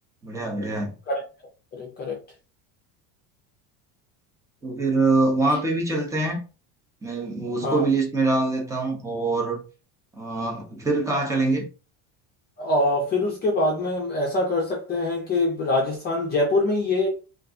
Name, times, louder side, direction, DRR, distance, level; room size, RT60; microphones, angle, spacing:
voice 1, 0.2-1.0 4.6-6.4 7.0-9.6 10.1-11.7, right 3 dB, 10° right, 0.7 m, -24 dB
voice 2, 1.7-2.2 7.6-7.9 12.6-17.1, left 2 dB, 25° left, 0.7 m, -24 dB
2.5 x 2.2 x 3.7 m
cardioid pair, 150°, 38 cm